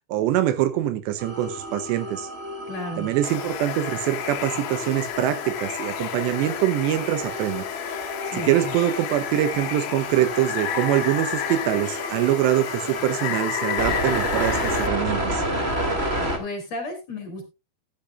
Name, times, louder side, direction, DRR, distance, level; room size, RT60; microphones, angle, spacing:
voice 1, 0.1-2.3 3.0-7.6 8.3-15.4, right 13 dB, 80° right, 12 dB, 3.0 m, -24 dB
sound 1, 1.2-16.4, right 1 dB, 25° right, 1.3 m, -31 dB
voice 2, 2.7-3.1 8.3-8.7 16.4-17.5, left 2 dB, 40° left, 4 dB, 3.2 m, -33 dB
Water, 3.2-14.9, left 11 dB, 80° left, 1.9 m, -31 dB
15.0 x 11.0 x 2.5 m, 0.24 s
omnidirectional pair, 5.1 m